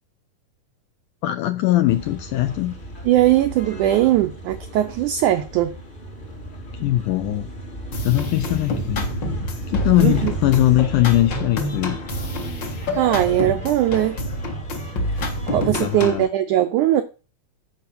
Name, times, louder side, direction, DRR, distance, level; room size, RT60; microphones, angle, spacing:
voice 1, 1.2-2.7 6.8-7.5 8.0-9.1 9.7-12.0 15.7-16.3, left 15 dB, 80° left, 1.8 m, -20 dB
sound 1, 1.9-15.7, right 1 dB, 30° left, 0.8 m, -35 dB
voice 2, 3.1-5.7 10.0-10.3 13.0-14.2 15.5-17.0, right 13 dB, 85° right, 1.7 m, -19 dB
sound 2, 7.9-16.3, left 1 dB, 50° left, 1.4 m, -28 dB
10.5 x 4.8 x 7.0 m
omnidirectional pair, 4.2 m